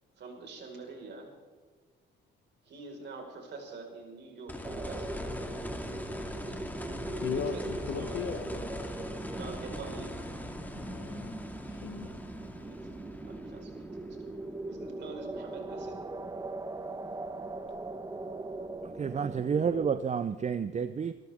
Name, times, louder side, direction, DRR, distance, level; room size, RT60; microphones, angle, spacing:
voice 1, 0.2-1.3 2.6-5.1 6.0-6.7 7.3-8.2 9.3-10.1 12.6-12.8 13.2-14.4 14.7-16.0, right 4 dB, 60° right, 2 dB, 4.9 m, -45 dB
sound 1, 4.5-15.4 17.7-17.8, left 1 dB, 10° left, 2.2 m, -41 dB
sound 2, 4.6-20.0, right 2 dB, 20° right, 1.2 m, -40 dB
voice 2, 7.2-8.7 10.8-11.4 11.7-12.2, left 8 dB, 70° left, 12 dB, 1.2 m, -38 dB
voice 3, 18.8-21.1, right 6 dB, 35° right, 12 dB, 0.6 m, -30 dB
25.5 x 13.5 x 3.6 m, 1.5 s
cardioid pair, 90°, 20 cm